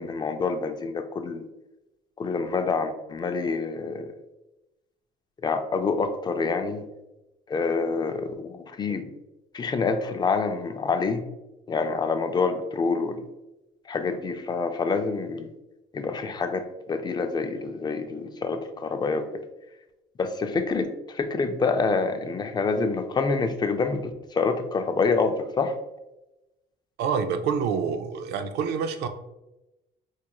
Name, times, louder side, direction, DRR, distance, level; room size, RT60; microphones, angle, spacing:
voice 1, 0.0-1.5 2.2-4.1 5.4-6.8 7.5-9.0 9.5-11.2 11.7-13.2 13.9-15.5 15.9-19.3 20.2-25.7, left 4 dB, 25° left, 7 dB, 0.4 m, -27 dB
voice 2, 27.0-29.1, right 6 dB, 80° right, 8 dB, 0.4 m, -27 dB
4.6 x 3.0 x 2.2 m, 0.96 s
cardioid pair, 110°, 17 cm